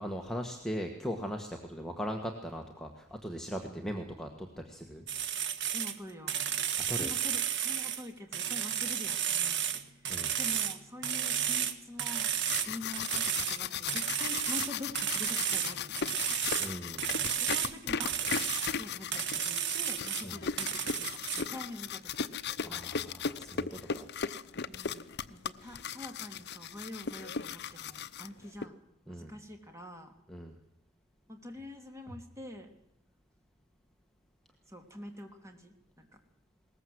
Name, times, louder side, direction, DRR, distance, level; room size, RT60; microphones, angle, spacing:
voice 1, 0.0-5.0 6.8-7.1 10.1-10.4 16.6-17.2 20.2-20.4 22.6-23.7 23.9-24.1 29.1-29.3 30.3-30.5, equal, ahead, 2 dB, 1.6 m, -39 dB
voice 2, 3.6-4.3 5.7-6.4 7.0-9.6 9.9-10.1 10.4-12.3 12.6-16.3 17.4-18.1 18.8-22.3 24.7-28.8 29.1-30.1 31.3-32.7 34.7-36.1, left 1 dB, 15° right, 4 dB, 3.0 m, -46 dB
sound 1, 5.1-6.0 6.3-8.0 8.3-10.8 11.0-12.7 12.9-13.6 13.9-16.7 17.0-17.7 18.0-18.7 19.1-20.3 20.6-21.4, right 9 dB, 55° right, 1.5 m, -32 dB
sound 2, 12.2-28.6, left 6 dB, 55° left, 0.8 m, -37 dB
21.0 x 19.5 x 7.9 m, 0.81 s
head